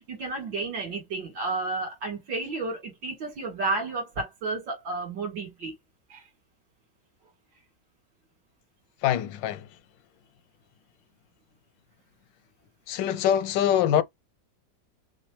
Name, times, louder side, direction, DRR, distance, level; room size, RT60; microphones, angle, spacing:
voice 1, 0.1-5.7 6.1-6.2, right 3 dB, 90° right, 2.6 m, -32 dB
voice 2, 9.0-9.7 12.9-14.0, left 10 dB, 85° left, 1.3 m, -24 dB
6.1 x 2.2 x 3.0 m
omnidirectional pair, 2.0 m